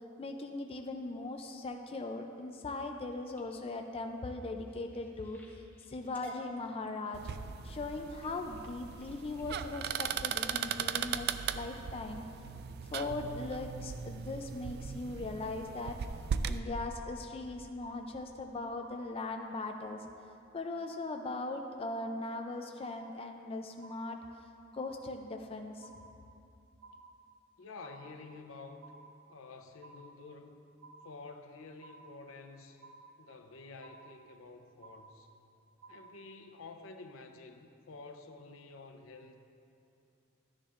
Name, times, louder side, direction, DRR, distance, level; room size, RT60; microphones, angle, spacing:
voice 1, 0.2-5.4 5.9-7.2 7.6-12.2 12.9-16.0 16.5-20.0 20.5-24.2 24.7-25.9, left 2 dB, 30° left, 4 dB, 0.4 m, -39 dB
sound 1, 3.1-11.7 12.2-12.6 13.0-13.4 13.8-13.9 14.2-14.3, equal, 10° left, 1.1 m, -58 dB
sound 2, 7.1-16.6, right 7 dB, 50° right, 0.3 m, -38 dB
sound 3, 16.8-17.5 17.8-18.5 18.8-19.5 19.8-20.5 20.8-21.5 21.8-22.5 22.8-23.5 23.8-24.5 24.8-25.5 25.8-26.5 26.8-27.5 27.8-28.5 28.8-29.5 29.8-30.5 30.8-31.5 31.8-32.5 32.8-33.5 33.8-34.5 34.8-35.5 35.8-36.5, right 3 dB, 85° right, 0.6 m, -55 dB
voice 2, 27.6-28.8 29.3-30.6 31.0-32.9 33.2-35.3 35.9-39.4, left 3 dB, 75° left, 6 dB, 0.6 m, -50 dB
12.5 x 9.8 x 2.5 m, 2.6 s
head